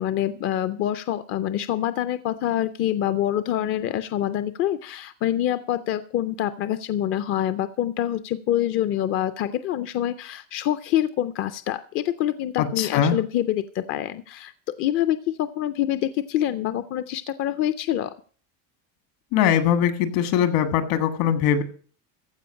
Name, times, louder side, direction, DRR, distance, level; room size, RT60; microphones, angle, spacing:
voice 1, 0.0-14.5 14.8-18.1, left 12 dB, 35° left, 12 dB, 0.4 m, -26 dB
voice 2, 12.6-13.2 19.3-21.6, left 9 dB, 65° left, 11 dB, 1.7 m, -21 dB
15.0 x 5.1 x 8.6 m, 0.43 s
cardioid pair, 180°, 38 cm